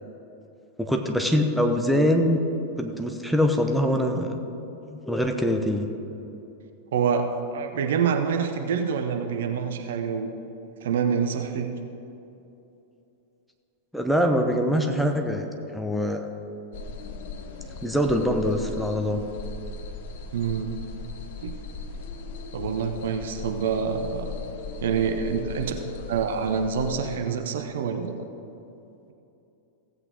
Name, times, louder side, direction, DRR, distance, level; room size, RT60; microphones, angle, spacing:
voice 1, 0.8-2.4 2.8-4.4 4.8-5.9 13.9-15.5 15.7-16.2 17.8-19.2, equal, ahead, 3 dB, 0.9 m, -23 dB
voice 2, 6.9-10.3 10.8-11.7 20.3-20.8 21.4-21.6 22.5-24.4 24.8-28.3, right 6 dB, 60° right, 6 dB, 0.8 m, -27 dB
sound 1, 16.7-27.2, left 4 dB, 55° left, 0.9 m, -37 dB
16.0 x 8.3 x 3.5 m, 2.9 s
figure-of-eight pair, 95°, 0 cm